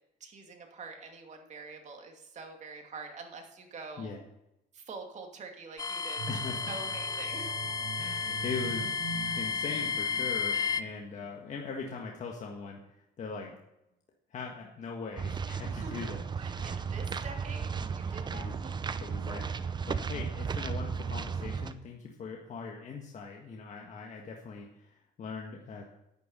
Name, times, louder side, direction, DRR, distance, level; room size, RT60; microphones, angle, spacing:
voice 1, 0.2-4.1 4.7-6.2 6.7-7.6 15.6-15.9 16.4-18.7, right 4 dB, 45° right, 3 dB, 2.4 m, -45 dB
sound 1, 5.8-10.8, left 6 dB, 20° left, 0.5 m, -33 dB
sound 2, 6.2-11.4 11.9-12.1, right 6 dB, 80° right, 2.4 m, -43 dB
voice 2, 6.3-6.8 8.0-13.6 14.3-16.2 16.5-16.8 18.3-18.5 19.0-25.9, left 5 dB, 45° left, 0 dB, 1.6 m, -41 dB
sound 3, 15.2-21.7, right 6 dB, 25° right, 0.7 m, -35 dB
10.5 x 9.2 x 5.6 m, 0.86 s
cardioid pair, 110°, 17 cm